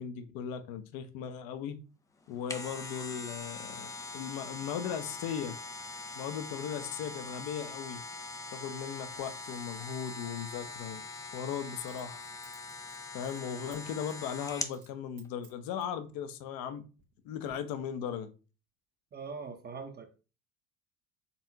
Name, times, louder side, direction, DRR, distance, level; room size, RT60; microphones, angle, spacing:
voice 1, 0.0-1.8 2.3-5.6 6.2-8.0 8.5-11.0 11.3-12.2 13.1-16.8 17.2-18.3, left 8 dB, 55° left, 0.8 m, -37 dB
sound 1, 2.2-14.8 15.2-15.3, left 3 dB, 10° left, 0.4 m, -42 dB
Coin (dropping), 9.1-9.3 11.8-13.8 14.1-14.3 14.7-14.9 15.2-16.0 16.6-17.2 17.5-17.6, right 8 dB, 80° right, 1.2 m, -61 dB
voice 2, 19.1-20.2, right 5 dB, 25° right, 0.8 m, -42 dB
4.2 x 3.5 x 2.7 m
hypercardioid pair, 70°, 42 cm